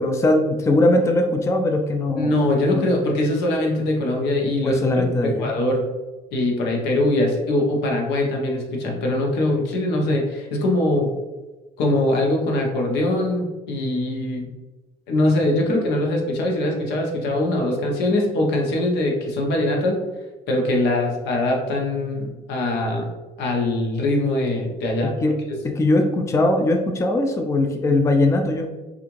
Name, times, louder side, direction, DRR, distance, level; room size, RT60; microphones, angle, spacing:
voice 1, 0.0-2.3 2.7-2.8 4.6-5.5 25.0-25.3 25.6-28.7, left 2 dB, 15° left, 4 dB, 0.4 m, -20 dB
voice 2, 2.2-4.8 5.2-5.9 6.3-11.1 11.8-14.5 15.1-20.0 20.5-23.1 23.4-25.1, left 1 dB, 85° left, 1 dB, 0.8 m, -22 dB
3.4 x 2.5 x 3.0 m, 1.2 s
cardioid pair, 110°, 17 cm